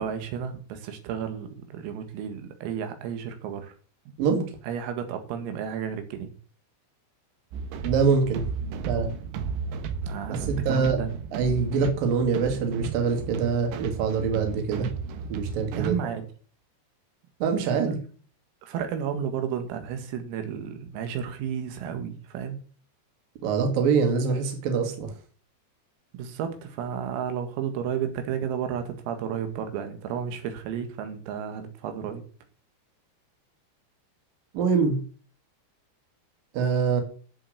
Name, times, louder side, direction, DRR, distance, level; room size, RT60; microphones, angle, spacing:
voice 1, 0.0-3.7 4.1-4.2 4.6-6.3 10.0-11.2 15.8-16.2 17.6-18.0 18.6-22.6 26.1-32.2, right 8 dB, 90° right, 7 dB, 4.5 m, -32 dB
sound 1, 7.5-15.9, right 5 dB, 70° right, 3.1 m, -34 dB
voice 2, 7.8-8.4 8.9-9.1 10.3-11.0 11.3-14.9 15.3-15.9 17.4-18.0 23.4-25.1 34.5-35.0 36.5-37.0, right 5 dB, 50° right, 4 dB, 3.5 m, -24 dB
10.0 x 7.8 x 8.4 m, 0.43 s
omnidirectional pair, 5.9 m